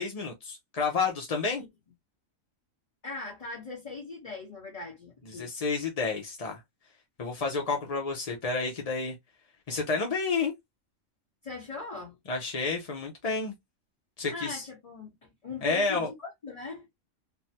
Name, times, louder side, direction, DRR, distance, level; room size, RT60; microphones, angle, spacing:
voice 1, 0.0-1.6 5.3-6.6 7.2-9.1 9.7-10.5 12.3-13.5 14.2-14.7 15.6-16.1, left 4 dB, 45° left, 0.5 m, -30 dB
voice 2, 3.0-5.5 11.4-12.2 14.3-16.9, left 3 dB, 30° left, 1.0 m, -40 dB
3.3 x 2.1 x 2.7 m
omnidirectional pair, 1.4 m